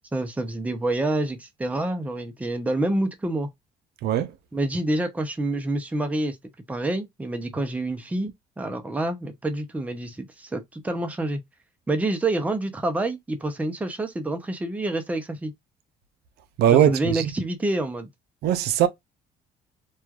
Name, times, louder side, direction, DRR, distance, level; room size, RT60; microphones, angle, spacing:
voice 1, 0.1-3.5 4.5-6.4 6.7-11.4 11.9-15.5 16.7-18.1, right 2 dB, 10° right, 0.5 m, -27 dB
voice 2, 4.0-4.3 16.6-17.3 18.4-18.9, right 10 dB, 70° right, 0.5 m, -20 dB
3.0 x 2.3 x 2.3 m
cardioid pair, 110°, 17 cm